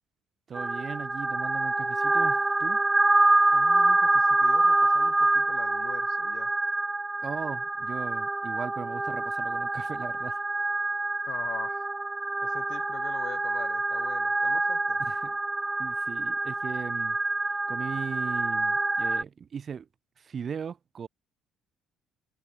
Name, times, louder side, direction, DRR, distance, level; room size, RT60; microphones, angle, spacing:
sound 1, 0.5-19.2, right 2 dB, 15° right, 0.4 m, -26 dB
voice 1, 0.5-2.8 7.2-10.4 15.0-15.4 15.8-17.2 17.7-19.9 20.2-21.1, right 7 dB, 45° right, 2.5 m, -38 dB
voice 2, 3.5-6.5 11.3-11.9 12.4-15.0, left 13 dB, 65° left, 3.5 m, -43 dB
hypercardioid pair, 55°, 0 cm